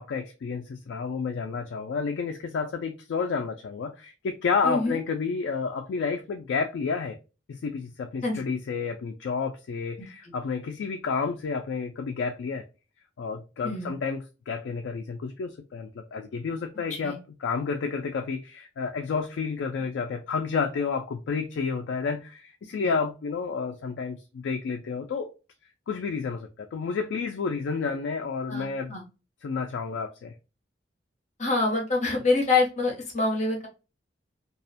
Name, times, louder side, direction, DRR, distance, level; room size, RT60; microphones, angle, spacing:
voice 1, 0.0-7.2 7.5-12.6 13.2-25.3 25.9-29.0 29.4-30.3, left 5 dB, 80° left, 4 dB, 0.3 m, -30 dB
voice 2, 4.6-5.0 8.2-8.4 10.2-10.3 13.6-13.9 17.0-17.2 22.8-22.9 28.5-29.0 31.4-33.7, left 3 dB, 40° left, 0 dB, 0.8 m, -26 dB
2.3 x 2.1 x 2.6 m, 0.30 s
head